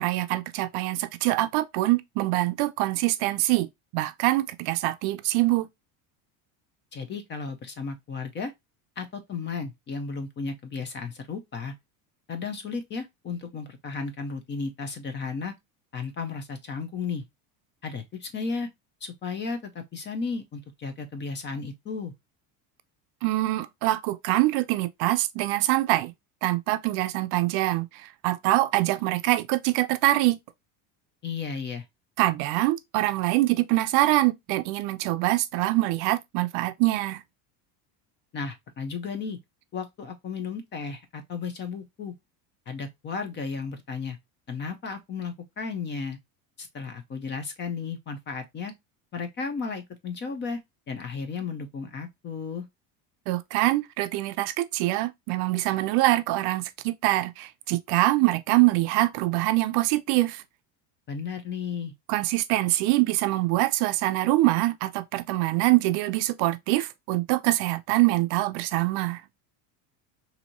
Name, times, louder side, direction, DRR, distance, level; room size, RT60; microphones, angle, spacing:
voice 1, 0.0-3.7 3.9-5.7 23.2-26.1 26.4-30.4 32.2-37.2 53.3-60.4 62.1-69.2, right 18 dB, 60° right, 0.5 m, -24 dB
voice 2, 6.9-8.5 9.0-11.7 12.3-15.5 15.9-17.2 17.8-18.7 19.0-22.1 31.2-31.8 38.3-39.4 39.7-42.1 42.7-44.2 44.5-46.2 46.6-48.7 49.1-50.6 50.9-52.6 61.1-61.9, left 5 dB, 25° left, 0.5 m, -34 dB
4.0 x 2.7 x 2.8 m
cardioid pair, 150°, 45 cm